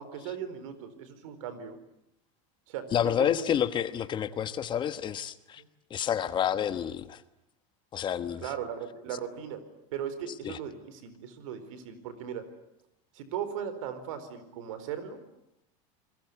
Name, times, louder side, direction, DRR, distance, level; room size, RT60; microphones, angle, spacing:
voice 1, 0.0-1.8 2.7-3.6 5.6-5.7 8.4-9.6 9.9-12.5 13.1-15.2, right 8 dB, 80° right, 12 dB, 4.7 m, -38 dB
voice 2, 2.9-5.6 5.9-7.2 7.9-8.5 10.4-10.6, left 9 dB, 30° left, 13 dB, 1.2 m, -29 dB
28.5 x 21.5 x 9.6 m, 0.81 s
supercardioid pair, 145°, 17 cm